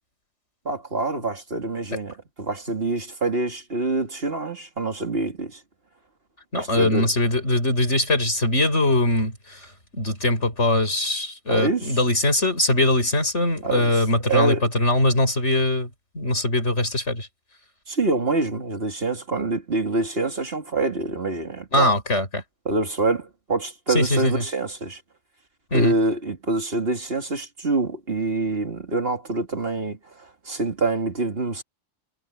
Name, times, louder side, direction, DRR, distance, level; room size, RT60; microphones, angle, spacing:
voice 1, 0.6-5.6 6.5-7.1 11.5-11.9 13.6-13.9 14.3-14.6 17.9-21.9 22.6-25.0 25.7-31.6, right 3 dB, 55° right, 2.6 m, -26 dB
voice 2, 6.5-15.9 16.1-17.3 21.7-22.4 23.9-24.4 25.7-25.9, left 1 dB, 70° left, 6.7 m, -22 dB
omnidirectional pair, 1.2 m